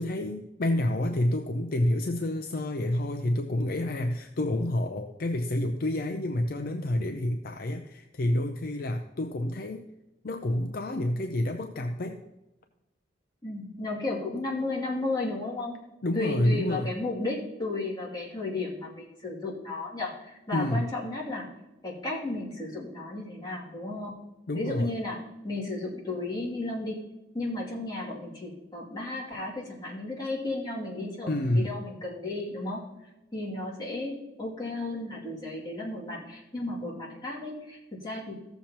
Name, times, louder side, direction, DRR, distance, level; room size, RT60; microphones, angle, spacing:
voice 1, 0.0-9.9 10.2-12.2 16.0-16.9 20.5-20.9 24.5-24.9 31.3-31.7, left 1 dB, 55° left, 6 dB, 0.5 m, -28 dB
voice 2, 13.4-15.7 16.1-21.5 21.8-24.1 24.5-27.0 27.3-32.8 33.3-38.3, left 2 dB, 20° left, -5 dB, 2.5 m, -34 dB
14.5 x 7.0 x 2.9 m, 0.99 s
head